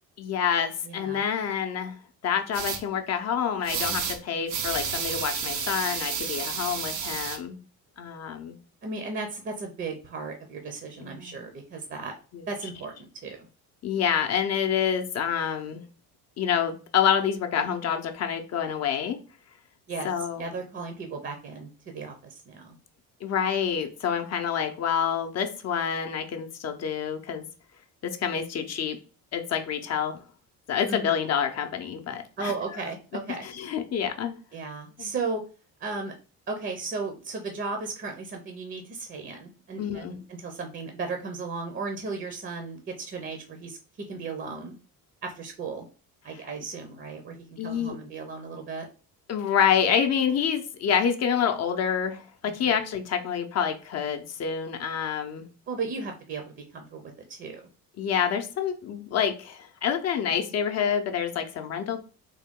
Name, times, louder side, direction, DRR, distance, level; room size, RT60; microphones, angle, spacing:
voice 1, 0.2-2.0 2.2-7.6 8.0-8.6 11.0-11.4 12.3-12.4 13.8-15.8 16.4-19.2 20.0-20.4 23.2-27.4 28.0-29.0 29.3-30.1 30.7-32.5 33.4-34.4 35.0-35.1 39.8-40.2 47.6-48.0 49.3-55.5 58.0-62.0, left 8 dB, 45° left, 5 dB, 0.6 m, -27 dB
voice 2, 0.8-1.2 8.8-12.2 12.5-13.5 19.9-22.7 30.9-31.2 32.4-33.5 34.5-35.4 35.8-36.1 36.5-43.8 44.1-44.8 45.2-45.9 46.2-48.9 52.5-52.6 55.7-57.6, right 4 dB, 35° right, 4 dB, 0.6 m, -35 dB
sound 1, 2.5-2.8 3.6-4.2 4.5-7.4, right 6 dB, 90° right, 0.8 m, -31 dB
3.7 x 2.2 x 3.6 m, 0.35 s
cardioid pair, 115°, 36 cm